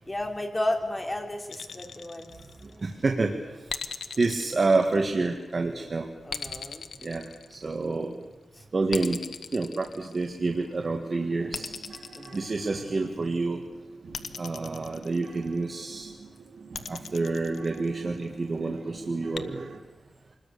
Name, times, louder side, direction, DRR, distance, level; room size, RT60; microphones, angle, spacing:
voice 1, 0.1-2.3 6.2-6.9 8.6-8.7 12.1-12.5, left 1 dB, 15° left, 3 dB, 3.3 m, -32 dB
sound 1, 1.5-2.9 3.7-5.5 6.3-8.0 8.9-10.6 11.5-13.2 14.1-15.7 16.7-18.2 19.3-19.4, left 6 dB, 85° left, 1.1 m, -39 dB
voice 2, 2.6-3.8 4.2-6.1 7.0-8.2 8.7-9.2 9.5-11.8 12.3-13.6 14.4-16.1 16.9-19.7, right 3 dB, 35° right, 3 dB, 1.7 m, -28 dB
sound 2, 10.7-19.8, right 4 dB, 85° right, 3.0 m, -47 dB
26.5 x 20.5 x 6.8 m, 1.2 s
wide cardioid pair, 145°, 0 cm